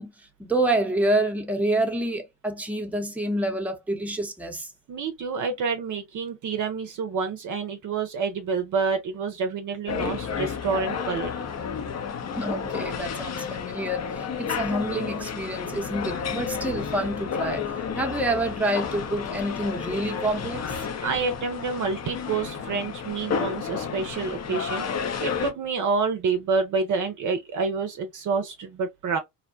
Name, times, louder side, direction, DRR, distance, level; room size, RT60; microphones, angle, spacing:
voice 1, 0.0-4.7 12.3-17.7 17.9-20.6, right 1 dB, 5° right, 0.8 m, -27 dB
voice 2, 4.9-11.3 21.0-29.2, right 5 dB, 45° right, 0.6 m, -28 dB
sound 1, 9.9-25.5, left 6 dB, 35° left, 0.7 m, -31 dB
2.7 x 2.1 x 2.6 m
hypercardioid pair, 50°, 42 cm